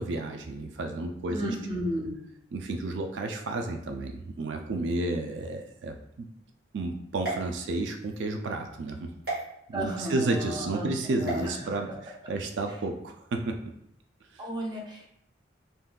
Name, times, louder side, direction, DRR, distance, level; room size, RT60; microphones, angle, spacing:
voice 1, 0.0-1.5 2.5-6.3 6.7-9.1 9.7-11.9 12.3-13.6, right 2 dB, 85° right, 4 dB, 0.4 m, -31 dB
voice 2, 1.3-2.1 9.7-11.9 14.4-15.1, equal, 25° right, -1 dB, 0.6 m, -34 dB
sound 1, 7.2-8.2 9.2-9.4 11.2-11.5, right 2 dB, 55° right, 1.3 m, -35 dB
3.5 x 2.6 x 2.3 m, 0.75 s
head